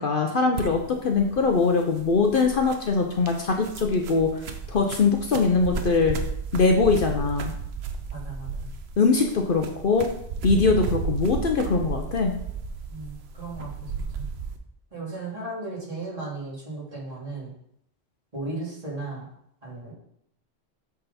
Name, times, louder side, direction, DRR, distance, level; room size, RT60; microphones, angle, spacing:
voice 1, 0.0-4.4 4.7-6.2 6.5-7.5 9.0-10.1 10.4-12.4, left 4 dB, 55° left, 3 dB, 0.9 m, -22 dB
sound 1, 0.5-14.6, right 5 dB, 70° right, 1.0 m, -34 dB
voice 2, 8.1-8.7 12.9-14.3 14.9-17.5 18.3-19.3 19.6-19.9, right 2 dB, 35° right, -6 dB, 2.8 m, -36 dB
7.8 x 4.0 x 4.2 m, 0.73 s
omnidirectional pair, 1.1 m